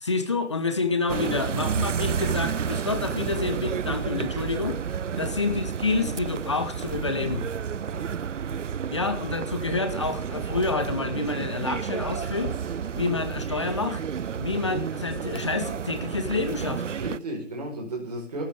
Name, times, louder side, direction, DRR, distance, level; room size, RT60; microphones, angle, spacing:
voice 1, 0.0-4.8 5.2-7.4 8.9-12.5 12.9-14.0 14.4-16.8, left 3 dB, 25° left, 9 dB, 1.0 m, -28 dB
voice 2, 1.1-1.4 5.1-5.3 7.9-8.1 16.9-18.5, right 1 dB, 35° right, 1 dB, 4.5 m, -34 dB
sound 1, 1.1-17.2, right 7 dB, 75° right, 0.5 m, -31 dB
18.0 x 13.5 x 3.6 m, 0.39 s
figure-of-eight pair, 160°, 37 cm